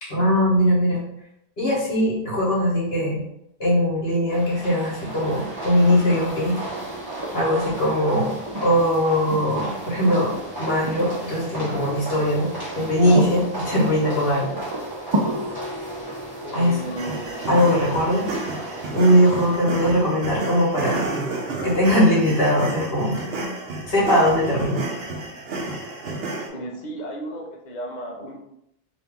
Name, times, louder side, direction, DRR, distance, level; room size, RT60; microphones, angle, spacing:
voice 1, 0.0-1.0 1.6-3.2 3.6-6.6 7.3-12.5 12.7-14.5 16.5-16.8 17.5-18.3 18.9-21.1 21.6-23.3 23.8-24.8, equal, 65° left, -6 dB, 1.4 m, -20 dB
sound 1, 4.3-19.6, right 2 dB, 25° right, 0.9 m, -35 dB
sound 2, 5.9-19.8 21.6-21.7, right 1 dB, 50° right, 0.3 m, -33 dB
voice 2, 16.4-17.3 26.5-28.4, right 1 dB, 50° left, 1 dB, 0.7 m, -34 dB
sound 3, 17.0-26.5, right 2 dB, 70° right, 0.9 m, -31 dB
2.9 x 2.6 x 3.4 m, 0.79 s
omnidirectional pair, 1.1 m